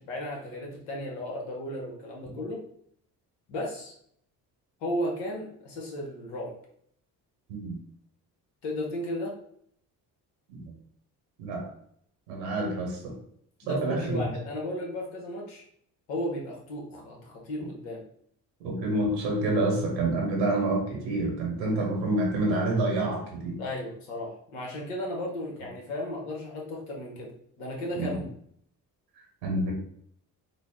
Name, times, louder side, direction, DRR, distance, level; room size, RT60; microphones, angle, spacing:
voice 1, 0.0-2.6 3.5-3.9 4.8-6.5 8.6-9.4 13.6-15.6 16.1-18.0 23.5-27.3 27.6-28.3, left 1 dB, 75° left, -1 dB, 1.1 m, -34 dB
voice 2, 12.3-13.1 13.7-14.2 18.6-23.6 28.0-28.1 29.4-29.7, right 2 dB, 90° right, 0 dB, 1.1 m, -27 dB
3.9 x 2.1 x 3.6 m, 0.66 s
hypercardioid pair, 45°, 48 cm